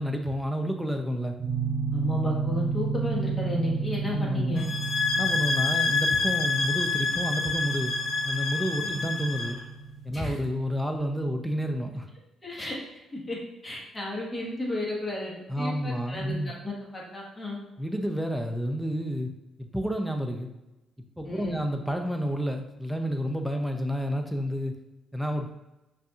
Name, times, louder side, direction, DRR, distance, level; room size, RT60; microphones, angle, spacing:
voice 1, 0.0-1.4 4.1-4.6 5.1-7.9 8.2-9.6 10.0-12.1 15.5-16.5 17.8-19.3 19.6-20.5 21.2-24.7 25.1-25.5, equal, ahead, 4 dB, 0.5 m, -30 dB
sound 1, 1.4-11.0, right 5 dB, 45° right, 0.9 m, -33 dB
voice 2, 1.9-4.7 8.8-8.9 10.1-10.4 12.4-12.8 13.1-13.4 13.6-16.4 16.6-17.6 21.2-21.6, left 1 dB, 20° left, -4 dB, 1.3 m, -33 dB
sound 2, 4.6-9.6, left 3 dB, 60° left, 0.7 m, -27 dB
5.3 x 2.6 x 2.4 m, 0.99 s
cardioid pair, 90°, 0 cm